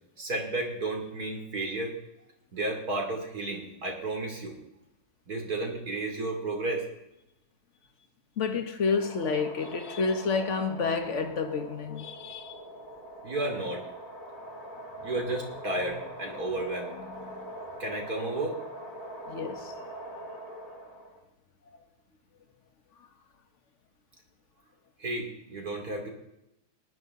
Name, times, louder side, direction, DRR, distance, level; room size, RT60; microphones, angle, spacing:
voice 1, 0.2-1.9 2.5-4.5 5.3-6.8 13.2-13.8 15.0-16.9 17.8-18.5 25.0-26.1, right 2 dB, 45° right, 3.3 m, -32 dB
voice 2, 8.4-12.5 15.8-15.9 16.9-17.5 19.3-20.1 23.0-23.1, left 5 dB, 40° left, 1.3 m, -30 dB
sound 1, 8.8-21.2, right 1 dB, 25° left, 2.2 m, -43 dB
19.0 x 11.5 x 3.8 m
omnidirectional pair, 2.3 m